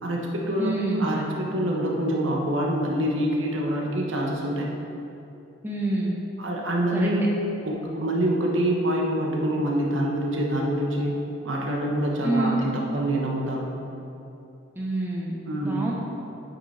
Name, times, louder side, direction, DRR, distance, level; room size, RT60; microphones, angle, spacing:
voice 1, 0.0-0.7 1.0-4.7 6.4-7.2 7.6-13.7 15.4-15.9, right 1 dB, 90° right, -1 dB, 1.2 m, -26 dB
voice 2, 0.6-1.1 5.6-6.2 6.9-7.1 12.2-12.6 14.8-15.9, right 2 dB, 10° right, -3 dB, 0.9 m, -27 dB
8.9 x 5.8 x 4.3 m, 2.8 s
head